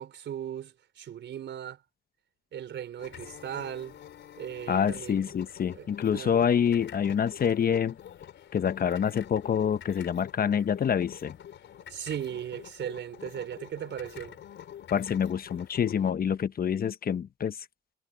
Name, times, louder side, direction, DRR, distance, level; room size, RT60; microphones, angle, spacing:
voice 1, 0.0-1.8 2.5-4.0 4.4-5.2 5.7-6.4 11.9-14.4, right 10 dB, 65° right, 4.3 m, -37 dB
sound 1, 3.0-16.1, left 10 dB, 70° left, 4.0 m, -47 dB
voice 2, 4.7-8.0 8.5-11.4 14.9-17.6, left 8 dB, 50° left, 1.1 m, -27 dB
cardioid pair, 90°, 20 cm